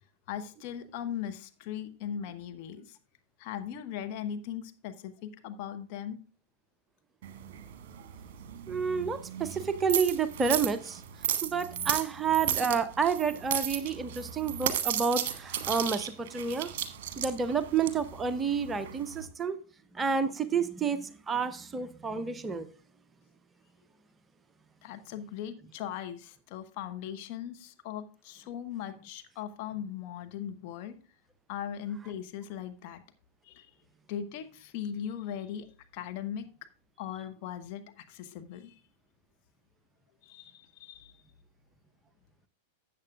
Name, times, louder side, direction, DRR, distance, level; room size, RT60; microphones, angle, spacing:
voice 1, 0.3-3.0 3.4-6.2 24.8-31.0 31.5-33.0 33.5-33.7 34.1-35.7 35.9-36.5 37.0-38.7 40.2-41.1, left 9 dB, 45° left, 1.0 m, -39 dB
sound 1, 7.2-19.3, right 9 dB, 45° right, 1.3 m, -35 dB
voice 2, 8.7-11.0 11.4-16.7 17.2-19.6 19.9-22.7, right 6 dB, 15° right, 0.6 m, -29 dB
13.5 x 8.2 x 2.4 m
figure-of-eight pair, 95°, 0 cm